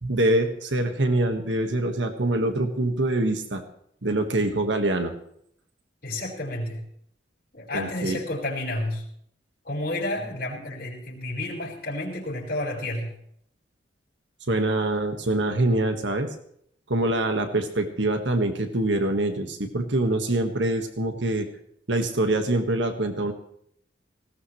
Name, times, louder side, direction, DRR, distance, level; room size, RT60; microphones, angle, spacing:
voice 1, 0.0-3.6 4.0-5.1 7.7-8.2 14.5-16.3 16.9-21.5 21.9-23.3, right 1 dB, 80° right, 6 dB, 1.6 m, -24 dB
voice 2, 6.0-6.8 7.5-9.0 9.6-13.1, left 1 dB, 50° left, -7 dB, 5.3 m, -31 dB
19.0 x 17.0 x 3.2 m, 0.68 s
head